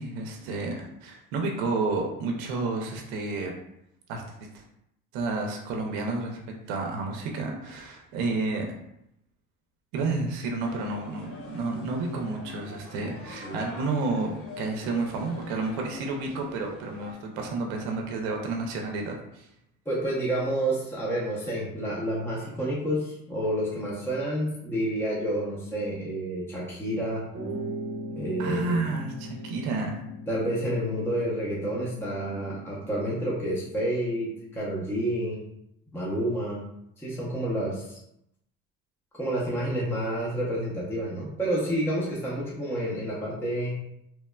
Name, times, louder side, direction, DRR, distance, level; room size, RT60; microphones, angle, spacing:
voice 1, 0.0-3.5 4.1-4.2 4.5-4.6 5.1-6.4 6.7-8.7 9.9-19.5 28.4-30.0, right 3 dB, 85° right, 1 dB, 0.5 m, -30 dB
sound 1, 10.6-17.1, left 3 dB, 40° left, 1.0 m, -44 dB
voice 2, 19.9-27.2 28.2-28.8 30.3-35.4 35.9-36.6 37.0-38.0 39.2-43.7, right 1 dB, 5° left, -6 dB, 0.6 m, -29 dB
sound 2, 27.3-35.0, equal, 40° right, 0.8 m, -40 dB
3.0 x 2.1 x 2.2 m, 0.79 s
supercardioid pair, 90°, 34 cm